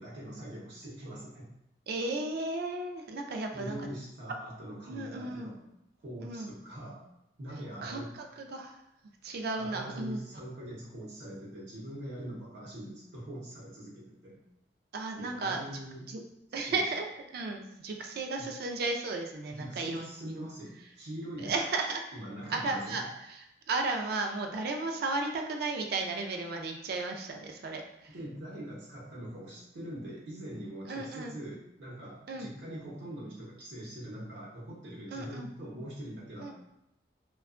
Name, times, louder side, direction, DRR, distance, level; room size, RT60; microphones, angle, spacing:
voice 1, 0.0-1.5 3.5-5.6 6.0-7.0 7.4-8.1 9.6-14.4 15.2-16.0 16.7-16.8 18.4-18.5 19.5-21.5 22.1-23.1 28.1-36.5, right 1 dB, 85° right, -6 dB, 0.8 m, -43 dB
voice 2, 1.9-3.8 4.9-5.5 6.2-6.5 7.8-8.8 9.2-10.4 14.9-15.8 16.1-16.2 16.5-20.4 21.4-22.0 22.5-23.4 23.7-28.1 30.9-31.4 32.3-32.5 35.1-35.5 36.4-36.5, right 3 dB, 60° right, 3 dB, 0.3 m, -34 dB
2.7 x 2.2 x 2.4 m, 0.82 s
head